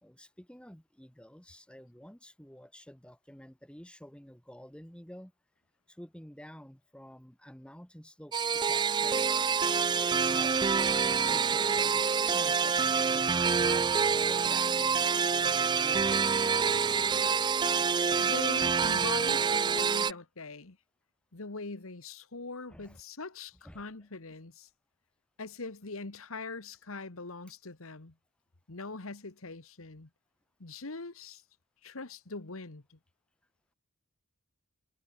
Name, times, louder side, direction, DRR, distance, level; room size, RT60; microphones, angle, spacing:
voice 1, 0.0-5.3 5.9-9.3 9.9-10.8 11.0-16.3 22.7-23.0 23.6-23.8, equal, 5° left, 2.1 m, -50 dB
sound 1, 8.3-20.1, right 6 dB, 20° right, 0.3 m, -27 dB
voice 2, 18.2-20.8 21.3-24.7 25.4-28.1 28.7-30.1 30.6-31.4 31.8-33.0, left 3 dB, 65° left, 1.6 m, -42 dB
head